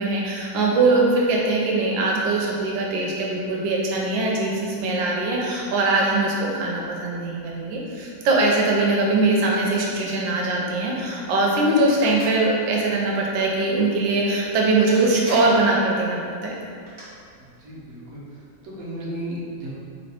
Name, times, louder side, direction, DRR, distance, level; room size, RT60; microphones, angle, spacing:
voice 1, 0.0-16.5, right 2 dB, 85° right, -2 dB, 1.4 m, -21 dB
sound 1, 11.9-12.4 14.5-14.6 14.9-15.7 16.6-17.0, right 1 dB, 20° right, 1.3 m, -37 dB
voice 2, 17.4-19.7, right 1 dB, 60° right, -6 dB, 1.2 m, -35 dB
3.2 x 3.1 x 4.2 m, 2.4 s
omnidirectional pair, 2.0 m